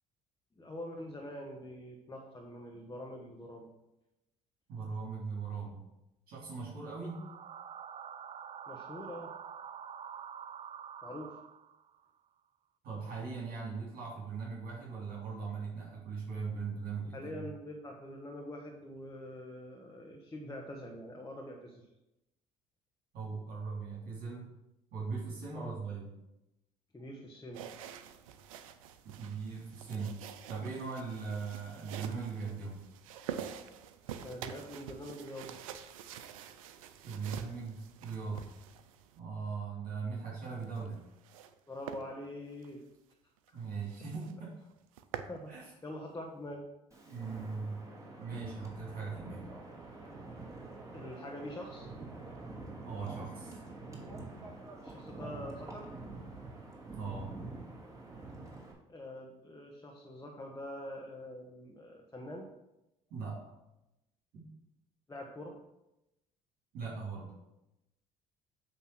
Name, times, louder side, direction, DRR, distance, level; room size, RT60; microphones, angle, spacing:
voice 1, 0.6-3.7 5.5-5.6 8.7-9.3 11.0-11.3 17.1-21.8 25.5-25.8 26.9-27.7 34.2-35.6 41.7-42.8 43.7-43.8 45.3-45.5 45.8-46.7 50.9-51.9 54.8-55.9 58.9-62.5 65.1-65.6, left 1 dB, 20° left, 0 dB, 1.4 m, -44 dB
voice 2, 4.7-5.8 6.3-7.2 12.8-17.4 23.1-24.4 24.9-26.1 29.0-30.2 30.5-32.8 37.0-38.5 39.2-41.0 43.5-44.5 45.5-45.6 47.0-47.8 48.2-49.4 52.8-53.6 56.9-57.3 63.1-63.4 64.3-64.4 66.7-67.3, right 5 dB, 60° right, -5 dB, 3.1 m, -39 dB
sound 1, 6.9-12.0, right 8 dB, 35° right, 0.4 m, -47 dB
sound 2, 27.5-39.2 40.5-41.5 41.9-42.0 42.5-42.7 43.1-43.2 43.5-43.6 43.9-44.3 44.7-45.4, right 9 dB, 85° right, 0.5 m, -46 dB
Wind, 46.9-58.7, right 2 dB, 20° right, 2.7 m, -46 dB
8.3 x 3.5 x 6.1 m, 0.92 s
hypercardioid pair, 65°, 17 cm